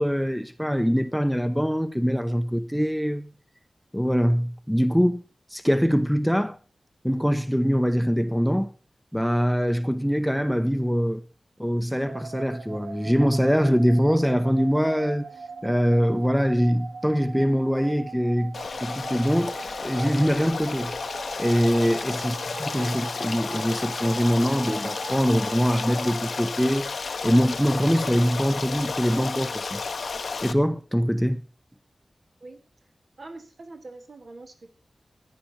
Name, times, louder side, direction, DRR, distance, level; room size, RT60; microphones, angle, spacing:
voice 1, 0.0-3.3 3.9-5.2 5.5-6.6 7.0-8.7 9.1-11.2 11.6-15.3 15.6-19.5 19.8-20.9 21.4-26.9 27.2-29.8 30.4-31.4, equal, ahead, 0.7 m, -23 dB
sound 1, 12.1-26.2, right 4 dB, 90° right, 0.6 m, -41 dB
Stream, 18.5-30.5, left 4 dB, 80° left, 0.8 m, -32 dB
voice 2, 33.2-34.7, right 2 dB, 70° right, 2.3 m, -44 dB
15.0 x 10.0 x 4.4 m
wide cardioid pair, 105°, 0 cm